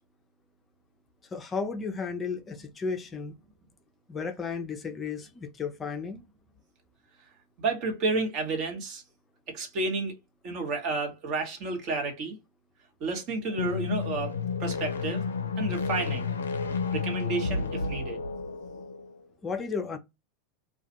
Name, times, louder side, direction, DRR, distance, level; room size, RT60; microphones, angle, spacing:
voice 1, 1.3-3.3 4.1-6.2 19.4-20.0, left 5 dB, 25° left, 0.4 m, -33 dB
voice 2, 7.6-9.0 9.5-10.1 10.4-12.4 13.0-14.3 14.6-15.2 15.6-16.3 16.9-18.2, right 3 dB, 45° right, 0.9 m, -31 dB
sound 1, 13.5-19.1, left 4 dB, 80° left, 0.4 m, -31 dB
2.4 x 2.2 x 2.7 m
hypercardioid pair, 90°, 0 cm